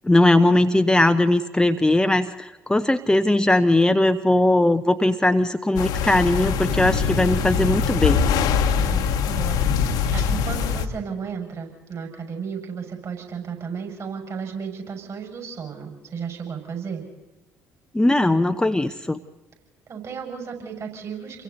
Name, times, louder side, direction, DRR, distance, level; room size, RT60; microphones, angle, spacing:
voice 1, 0.0-8.2 17.9-19.2, left 1 dB, 10° left, 8 dB, 1.0 m, -19 dB
sound 1, 5.8-10.9, left 6 dB, 60° left, 1.5 m, -22 dB
voice 2, 8.7-17.0 19.9-21.4, right 6 dB, 45° right, 2 dB, 6.5 m, -34 dB
29.0 x 23.0 x 4.1 m, 1.1 s
figure-of-eight pair, 50°, 8 cm